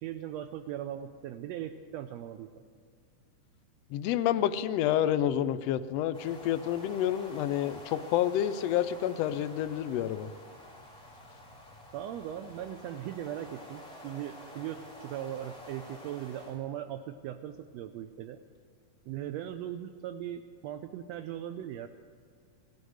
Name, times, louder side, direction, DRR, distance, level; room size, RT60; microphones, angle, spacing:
voice 1, 0.0-2.5 11.9-18.4 19.1-21.9, right 11 dB, 85° right, 8 dB, 1.6 m, -39 dB
voice 2, 3.9-10.3, left 11 dB, 85° left, 10 dB, 1.4 m, -29 dB
sound 1, 6.1-16.6, left 1 dB, ahead, 3.8 m, -49 dB
18.0 x 12.0 x 6.4 m, 2.2 s
omnidirectional pair, 3.6 m